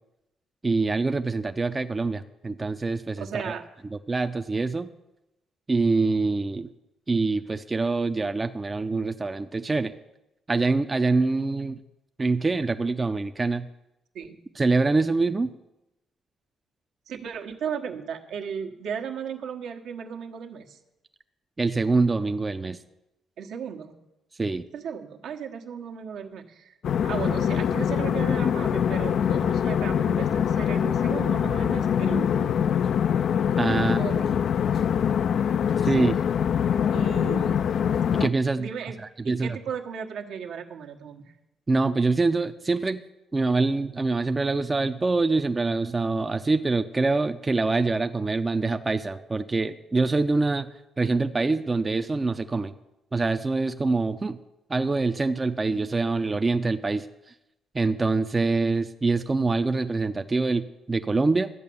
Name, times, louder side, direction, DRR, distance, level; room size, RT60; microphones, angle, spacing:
voice 1, 0.6-3.5 4.1-4.9 5.7-6.7 7.1-9.9 10.5-11.8 12.2-13.7 14.6-15.5 21.6-22.8 24.4-24.6 33.6-34.0 35.8-36.2 38.1-38.7 39.2-39.6 41.7-43.0 43.3-50.7 51.0-52.7 53.1-54.4 54.7-57.1 57.7-61.5, right 3 dB, 25° right, 8 dB, 0.5 m, -25 dB
voice 2, 3.2-3.6 14.1-14.4 17.1-20.8 23.4-23.9 24.7-26.7 27.0-32.6 33.7-34.4 35.8-36.1 36.9-37.6 38.6-39.0 39.2-41.3, right 7 dB, 80° right, 2 dB, 1.3 m, -35 dB
sound 1, 26.8-38.3, left 8 dB, 60° left, 0.4 m, -24 dB
12.5 x 8.5 x 6.9 m, 0.92 s
cardioid pair, 95°, 0 cm